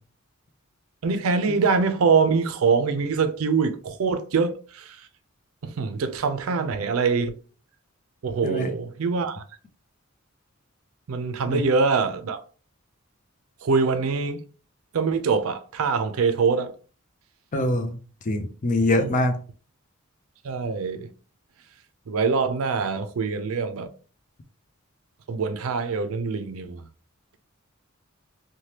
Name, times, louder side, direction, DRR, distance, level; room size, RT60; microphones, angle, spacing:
voice 1, 1.0-5.0 5.6-7.4 8.2-9.4 11.1-12.4 13.6-14.4 14.9-16.7 19.0-19.1 20.4-21.1 22.1-23.9 25.3-26.8, right 5 dB, 85° right, 0.4 m, -24 dB
voice 2, 17.5-18.0 18.3-19.4, left 1 dB, 40° left, 0.5 m, -23 dB
3.2 x 2.2 x 2.8 m
head